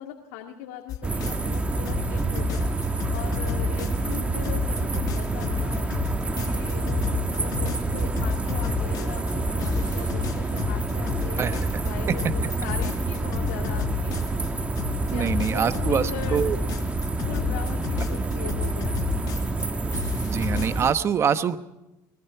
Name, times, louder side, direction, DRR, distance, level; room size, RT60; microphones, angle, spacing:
voice 1, 0.0-2.7 3.1-5.9 6.4-14.2 15.1-16.5 17.3-19.0, left 9 dB, 85° left, 2 dB, 2.0 m, -39 dB
sound 1, 0.9-1.6 1.8-4.2 4.4-9.3 9.6-11.9 12.2-14.5 14.8-19.6 19.9-20.8, left 11 dB, 45° left, 1.1 m, -32 dB
sound 2, 1.0-20.9, right 3 dB, 15° right, 1.4 m, -27 dB
voice 2, 15.1-16.6 20.2-21.6, right 7 dB, 30° right, 12 dB, 1.1 m, -24 dB
24.0 x 19.5 x 5.8 m, 0.95 s
cardioid pair, 125°, 8 cm